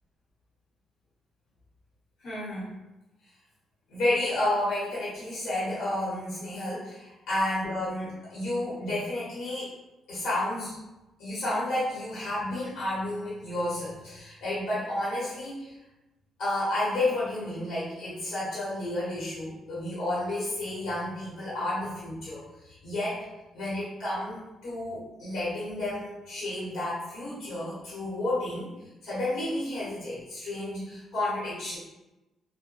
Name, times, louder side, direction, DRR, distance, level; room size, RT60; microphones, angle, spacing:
voice 1, 2.2-2.7 3.9-9.7 10.1-10.8 11.2-15.7 16.4-23.2 23.5-28.7 29.0-31.8, left 1 dB, 80° left, -9 dB, 1.0 m, -31 dB
3.0 x 2.1 x 2.5 m, 1.0 s
cardioid pair, 90°, 0 cm